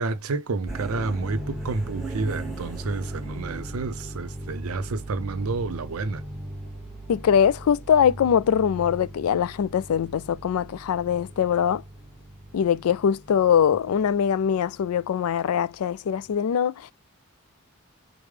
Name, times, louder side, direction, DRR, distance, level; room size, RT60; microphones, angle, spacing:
voice 1, 0.0-6.2, right 3 dB, 85° right, 0.6 m, -30 dB
sound 1, 0.7-15.8, right 1 dB, ahead, 0.9 m, -38 dB
voice 2, 7.1-11.8 12.5-16.7, left 8 dB, 90° left, 0.3 m, -22 dB
5.0 x 2.0 x 3.2 m
head